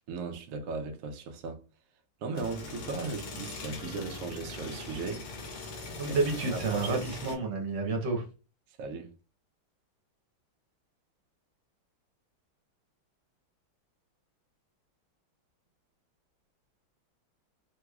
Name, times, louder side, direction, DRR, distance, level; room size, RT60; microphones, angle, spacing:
voice 1, 0.1-1.6 2.2-5.9 6.4-7.1 8.8-9.1, right 4 dB, 90° right, 0.7 m, -37 dB
sound 1, 2.3-7.3, left 3 dB, 60° left, 1.1 m, -41 dB
voice 2, 6.0-8.2, right 3 dB, 65° right, 1.4 m, -30 dB
3.3 x 2.9 x 2.3 m
omnidirectional pair, 2.2 m